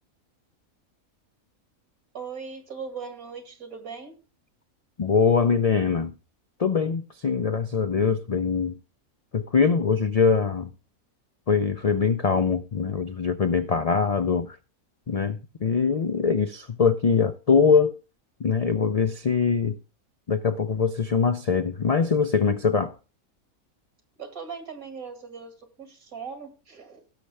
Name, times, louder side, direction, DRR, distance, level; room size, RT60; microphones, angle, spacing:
voice 1, 2.1-4.1 24.2-27.0, right 5 dB, 75° right, 2.6 m, -39 dB
voice 2, 5.0-6.1 6.6-8.8 9.3-10.7 11.5-14.6 15.1-18.0 18.4-19.8 20.3-22.9, left 5 dB, 80° left, 0.3 m, -23 dB
17.0 x 6.4 x 3.4 m
omnidirectional pair, 1.5 m